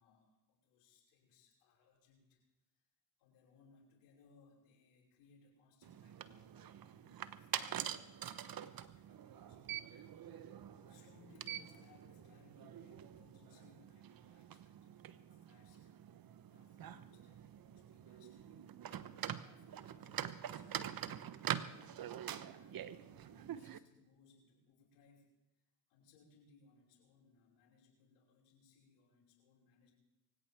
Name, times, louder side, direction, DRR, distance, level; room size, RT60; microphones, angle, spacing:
voice 1, 0.0-2.4 2.7-2.9 3.2-21.5 22.2-25.3 25.9-29.9, left 4 dB, 80° left, -3 dB, 5.6 m, -68 dB
sound 1, 5.8-23.8, right 10 dB, 45° right, 1.0 m, -46 dB
24.0 x 16.5 x 3.6 m, 0.96 s
hypercardioid pair, 60°, 49 cm